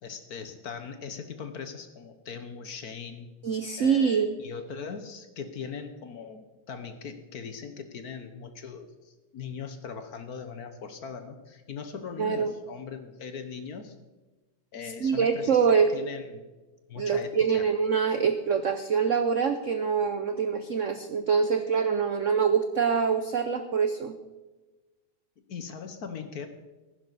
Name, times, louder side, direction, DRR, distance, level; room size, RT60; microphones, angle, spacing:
voice 1, 0.0-3.3 3.8-13.9 14.7-16.4 16.9-17.7 25.5-26.5, left 6 dB, 55° left, 8 dB, 1.3 m, -40 dB
voice 2, 3.4-4.4 12.2-12.5 15.0-15.9 17.0-24.2, right 6 dB, 70° right, 9 dB, 0.7 m, -25 dB
15.0 x 11.0 x 4.0 m, 1.2 s
omnidirectional pair, 2.2 m